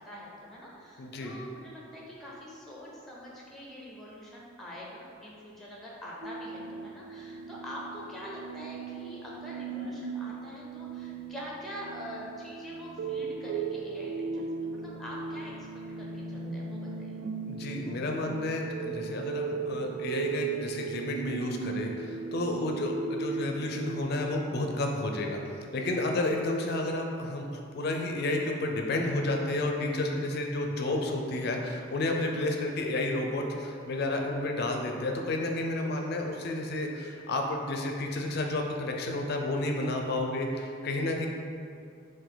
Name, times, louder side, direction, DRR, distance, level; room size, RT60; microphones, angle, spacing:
voice 1, 0.0-15.7 16.0-17.2 22.5-22.7, equal, ahead, -4 dB, 0.5 m, -44 dB
voice 2, 1.0-1.3 17.5-25.4 25.7-27.5 27.7-41.3, left 2 dB, 55° left, 2 dB, 0.4 m, -31 dB
sound 1, 6.2-24.0, right 5 dB, 65° right, 0.3 m, -37 dB
3.8 x 2.6 x 3.8 m, 2.4 s
head